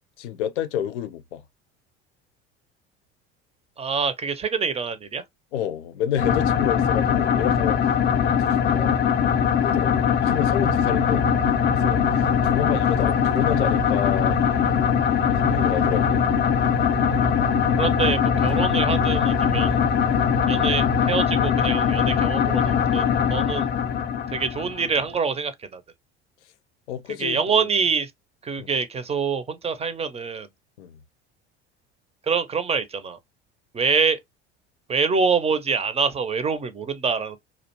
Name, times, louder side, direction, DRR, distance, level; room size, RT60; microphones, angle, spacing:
voice 1, 0.2-1.4 5.5-7.8 8.2-9.0 9.6-11.3 11.8-12.0 12.4-14.4 15.4-16.2 26.9-27.7 28.6-28.7 30.8-31.0, left 10 dB, 80° left, 0.5 m, -29 dB
voice 2, 3.8-5.2 17.8-19.7 20.5-23.7 24.3-25.8 27.2-28.1 28.4-30.5 32.3-33.2 33.7-34.2 34.9-37.4, right 5 dB, 20° right, 0.5 m, -25 dB
sound 1, 6.2-25.0, left 8 dB, 30° left, 0.4 m, -21 dB
sound 2, 10.6-21.2, right 6 dB, 80° right, 1.1 m, -34 dB
2.4 x 2.2 x 2.8 m
hypercardioid pair, 75°, 34 cm